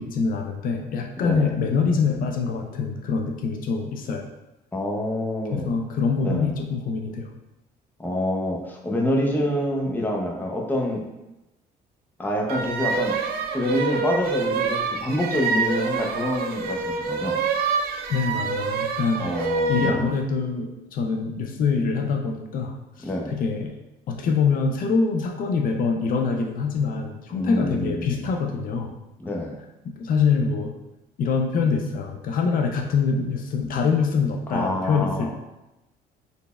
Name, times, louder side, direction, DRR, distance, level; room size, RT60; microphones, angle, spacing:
voice 1, 0.0-4.2 5.5-7.3 18.1-23.8 24.1-28.9 29.8-30.7 31.2-35.3, left 5 dB, 55° left, 2 dB, 0.4 m, -25 dB
voice 2, 1.2-1.5 4.7-5.7 6.2-6.5 8.0-11.0 12.2-17.4 19.2-20.1 23.0-23.4 27.3-28.2 29.2-29.6 34.5-35.3, left 1 dB, 10° left, -1 dB, 0.6 m, -27 dB
sound 1, 12.5-20.0, right 4 dB, 65° right, 0.5 m, -26 dB
4.1 x 3.3 x 2.3 m, 0.97 s
cardioid pair, 110°, 17 cm